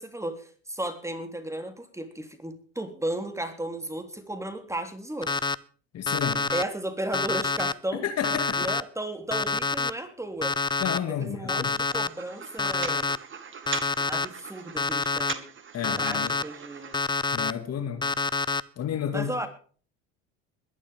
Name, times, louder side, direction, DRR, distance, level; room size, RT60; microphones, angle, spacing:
voice 1, 0.0-5.4 6.5-8.1 8.6-10.6 11.1-13.1 14.1-15.5 16.0-17.0 19.1-19.5, right 1 dB, 10° right, 3.5 m, -34 dB
Alarm, 5.2-5.5 6.1-6.6 7.1-7.7 8.2-8.8 9.3-9.9 10.4-11.0 11.5-12.1 12.6-13.2 13.7-14.3 14.8-15.3 15.8-16.4 16.9-17.5 18.0-18.6, left 4 dB, 15° left, 0.6 m, -27 dB
voice 2, 5.9-6.5 7.9-8.7 10.8-11.7 15.7-16.3 17.3-18.1 18.8-19.3, left 8 dB, 45° left, 2.4 m, -31 dB
sound 1, 11.8-17.0, right 6 dB, 35° right, 2.4 m, -40 dB
21.5 x 11.5 x 3.7 m
hypercardioid pair, 75°, 35 cm